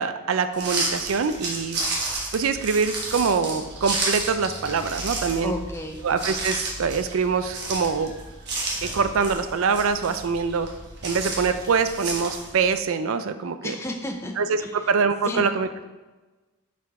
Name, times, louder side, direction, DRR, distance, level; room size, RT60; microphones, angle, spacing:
voice 1, 0.0-1.8 2.3-5.5 6.0-8.1 8.8-10.7 11.0-13.8 14.4-15.9, right 5 dB, 65° right, 11 dB, 0.4 m, -24 dB
sound 1, 0.5-12.7, right 2 dB, 50° right, 1.3 m, -32 dB
voice 2, 5.4-6.0 13.6-14.9 15.2-15.5, left 1 dB, 10° left, 3 dB, 0.5 m, -32 dB
5.7 x 4.9 x 4.8 m, 1.2 s
head